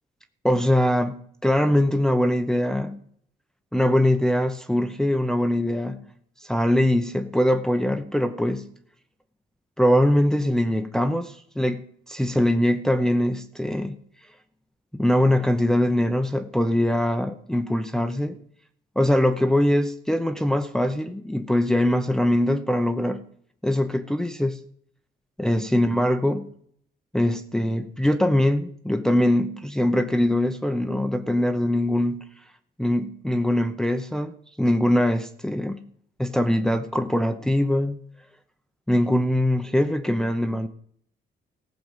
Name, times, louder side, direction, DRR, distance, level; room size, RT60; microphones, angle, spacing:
voice 1, 0.4-3.0 3.7-6.0 6.4-8.7 9.8-14.0 14.9-18.4 19.0-23.2 23.6-24.6 25.4-26.5 27.1-32.2 32.8-35.9 36.2-38.0 38.9-40.7, left 1 dB, 5° left, 0.8 m, -22 dB
15.0 x 5.1 x 8.0 m
cardioid pair, 90°, 20 cm